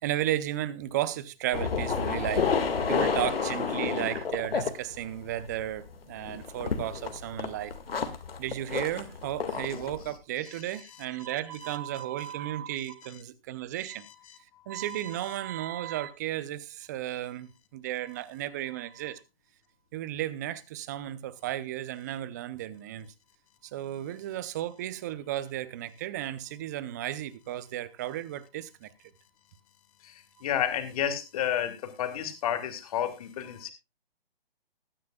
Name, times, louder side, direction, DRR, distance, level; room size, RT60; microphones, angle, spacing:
voice 1, 0.0-2.5 2.9-7.7 8.4-14.1 14.7-19.2 19.9-23.1 23.6-28.9, right 13 dB, 20° right, 0.6 m, -34 dB
sound 1, 1.5-5.9 6.2-10.1, left 5 dB, 70° left, 2.0 m, -30 dB
voice 2, 30.0-33.7, left 9 dB, 35° left, 2.2 m, -31 dB
20.0 x 9.4 x 2.3 m
hypercardioid pair, 145°, 30 cm